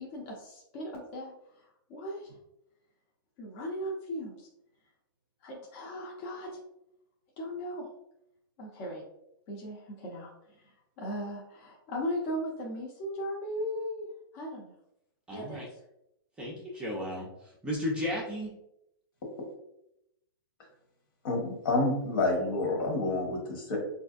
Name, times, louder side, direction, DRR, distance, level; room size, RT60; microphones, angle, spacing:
voice 1, 0.0-2.4 3.4-4.5 5.4-6.6 7.4-7.9 8.6-9.0 9.5-10.6 11.0-14.1 14.3-14.7 15.3-15.7, equal, 35° left, -2 dB, 0.7 m, -37 dB
voice 2, 15.3-15.7 16.4-18.5, left 1 dB, 10° right, -4 dB, 0.5 m, -34 dB
voice 3, 21.2-23.8, left 2 dB, 65° left, 0 dB, 1.2 m, -28 dB
4.2 x 2.6 x 2.4 m, 0.81 s
hypercardioid pair, 160°, 12 cm